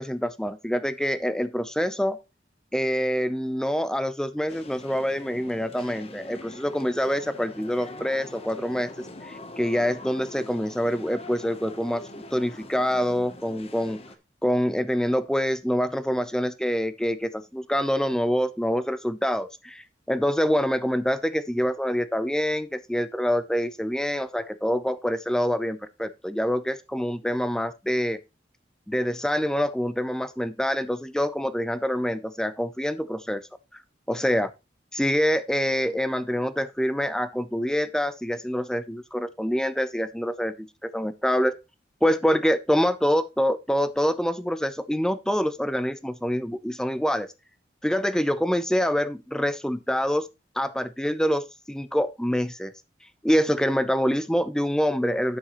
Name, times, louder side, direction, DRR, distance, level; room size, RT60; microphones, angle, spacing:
voice 1, 0.0-2.2 2.7-14.0 14.4-28.2 28.9-33.4 33.7-33.8 34.1-34.5 34.9-41.5 42.0-47.3 47.8-50.3 50.6-52.7 53.2-55.4, equal, 5° left, 0.5 m, -26 dB
sound 1, 4.5-14.2, left 1 dB, 35° left, 1.0 m, -43 dB
11.5 x 6.4 x 3.0 m
head